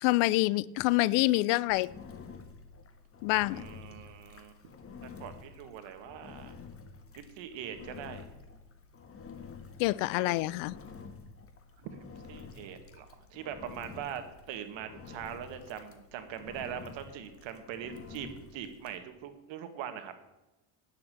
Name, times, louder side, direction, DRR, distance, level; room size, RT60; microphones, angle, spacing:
voice 1, 0.0-1.9 3.2-3.6 9.8-10.7, left 20 dB, 80° left, 0.6 m, -26 dB
Engine, 1.7-19.0, left 5 dB, 30° left, 1.5 m, -49 dB
voice 2, 3.5-4.6 5.0-6.5 7.2-8.3 10.1-10.5 12.3-20.1, right 9 dB, 65° right, 1.9 m, -42 dB
9.7 x 7.4 x 7.7 m
cardioid pair, 115°, 48 cm